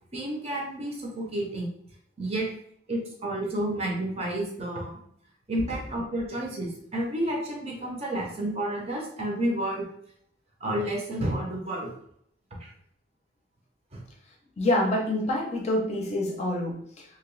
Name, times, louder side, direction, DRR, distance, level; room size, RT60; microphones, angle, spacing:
voice 1, 0.1-1.7 2.2-2.5 2.9-5.0 5.5-9.9 10.6-11.9 12.6-12.7 13.9-14.0, right 1 dB, 30° right, -1 dB, 0.7 m, -30 dB
voice 2, 14.6-17.0, left 1 dB, 35° left, -1 dB, 0.6 m, -27 dB
2.9 x 2.9 x 3.1 m, 0.66 s
head